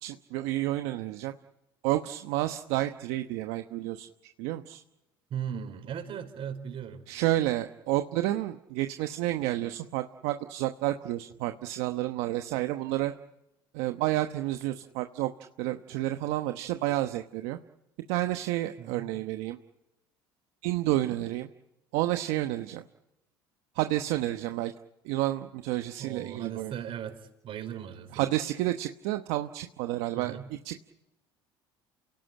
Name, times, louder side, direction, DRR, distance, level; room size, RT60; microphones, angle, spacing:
voice 1, 0.0-1.3 1.8-4.1 4.4-4.8 7.1-13.1 13.7-15.3 15.6-17.6 18.1-19.6 20.6-21.5 21.9-22.8 23.7-24.7 25.0-26.7 28.1-30.4 30.6-30.8, right 15 dB, 75° right, 7 dB, 1.1 m, -30 dB
voice 2, 5.3-7.0 18.8-19.1 26.0-28.2 30.2-30.5, right 8 dB, 55° right, 7 dB, 5.2 m, -38 dB
28.0 x 17.5 x 9.1 m, 0.93 s
supercardioid pair, 80°, 11 cm